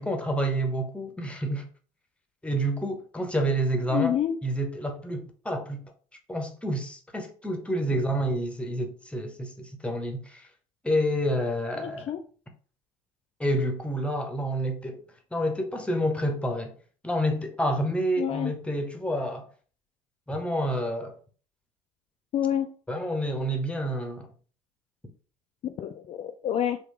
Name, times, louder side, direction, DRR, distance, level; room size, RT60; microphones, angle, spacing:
voice 1, 0.0-1.7 2.4-4.2 4.4-5.8 6.3-10.5 10.8-12.1 13.4-15.0 15.3-16.7 17.0-19.5 20.3-21.2 22.9-24.3, equal, 5° left, 0.9 m, -28 dB
voice 2, 3.9-4.4 11.8-12.2 18.2-18.5 22.3-22.7 25.6-26.8, left 10 dB, 35° left, 0.4 m, -28 dB
3.8 x 2.7 x 3.3 m
figure-of-eight pair, 60°, 18 cm